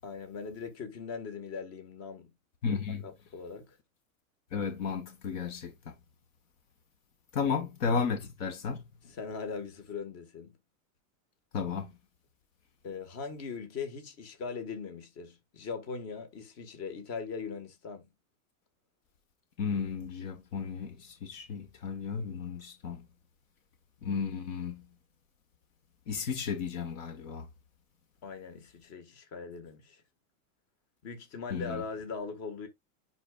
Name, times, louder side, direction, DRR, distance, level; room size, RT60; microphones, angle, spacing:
voice 1, 0.0-2.3 3.0-3.8 7.4-7.5 9.0-10.5 12.8-18.1 28.2-30.0 31.0-32.7, left 5 dB, 35° left, 1.7 m, -40 dB
voice 2, 2.6-3.1 4.5-5.9 7.3-8.8 11.5-11.9 19.6-23.1 24.0-24.8 26.1-27.5 31.5-31.8, left 6 dB, 65° left, 1.4 m, -33 dB
10.0 x 4.1 x 2.4 m
supercardioid pair, 155°, 42 cm